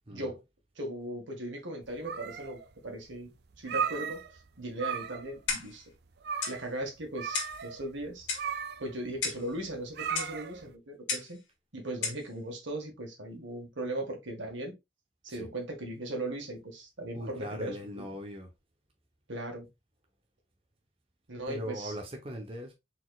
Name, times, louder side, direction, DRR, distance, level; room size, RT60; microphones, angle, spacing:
voice 1, 0.1-0.4 0.7-4.2 4.6-5.9 6.5-8.3 8.8-11.4 11.7-14.7 15.2-18.1 19.3-19.7 21.3-21.9, right 1 dB, 80° right, 1.6 m, -38 dB
sound 1, 1.8-2.7 3.1-3.2 3.5-4.5 4.7-5.4 5.7-5.8 6.2-6.7 7.1-10.7, right 7 dB, 60° right, 0.4 m, -36 dB
Clock, 5.5-5.8 6.4-6.6 7.3-7.6 8.3-8.5 9.2-9.5 10.1-10.4 11.1-11.3 12.0-12.2, left 5 dB, 90° left, 1.7 m, -33 dB
voice 2, 17.1-18.5 21.5-22.7, equal, 30° right, 0.8 m, -40 dB
4.3 x 4.2 x 2.3 m
head